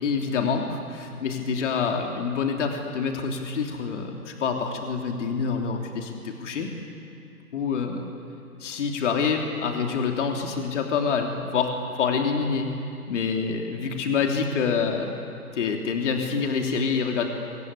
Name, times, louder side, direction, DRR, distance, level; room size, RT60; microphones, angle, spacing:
voice 1, 0.0-6.7 7.5-8.1 8.6-11.7 12.0-12.7 13.1-15.1 15.5-17.3, left 5 dB, 50° left, 2 dB, 3.2 m, -26 dB
28.0 x 24.5 x 8.4 m, 2.5 s
hypercardioid pair, 150°, 45 cm